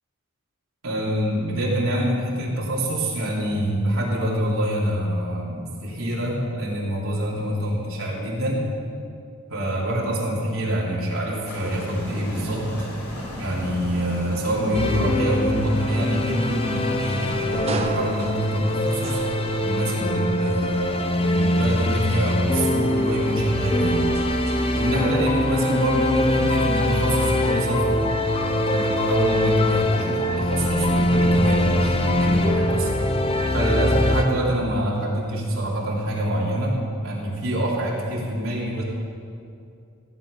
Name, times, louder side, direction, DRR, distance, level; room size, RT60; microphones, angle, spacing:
voice 1, 0.8-8.7 9.5-12.9 13.4-19.2 19.6-24.1 24.7-32.9 33.5-38.8, equal, 75° right, -5 dB, 3.3 m, -25 dB
sound 1, 11.5-25.4, equal, 85° left, 3.6 m, -37 dB
sound 2, 14.7-34.2, left 1 dB, 25° left, 0.7 m, -23 dB
sound 3, 17.1-20.0 20.6-24.8, right 2 dB, 30° right, 0.8 m, -38 dB
16.5 x 9.0 x 5.5 m, 2.5 s
head